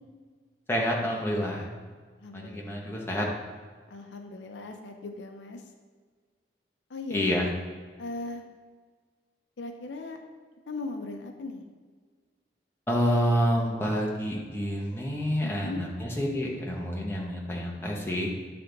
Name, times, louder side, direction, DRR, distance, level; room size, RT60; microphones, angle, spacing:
voice 1, 0.7-1.7 2.3-3.3 7.1-7.5 12.9-18.3, equal, 15° left, -3 dB, 0.9 m, -28 dB
voice 2, 2.2-3.0 3.9-5.6 6.9-7.3 8.0-8.4 9.6-10.2 10.7-11.6 15.4-15.8, left 2 dB, 85° left, 4 dB, 0.6 m, -38 dB
8.9 x 3.4 x 3.8 m, 1.5 s
head